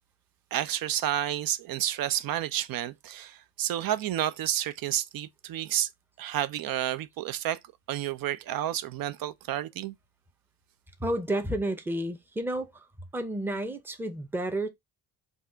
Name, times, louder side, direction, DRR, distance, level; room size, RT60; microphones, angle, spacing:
voice 1, 0.5-5.9 6.2-7.6 7.9-9.9, right 12 dB, 55° right, 0.6 m, -30 dB
voice 2, 11.0-12.9 13.1-14.7, right 1 dB, 5° right, 0.7 m, -31 dB
4.1 x 2.4 x 3.5 m
cardioid pair, 90°, 42 cm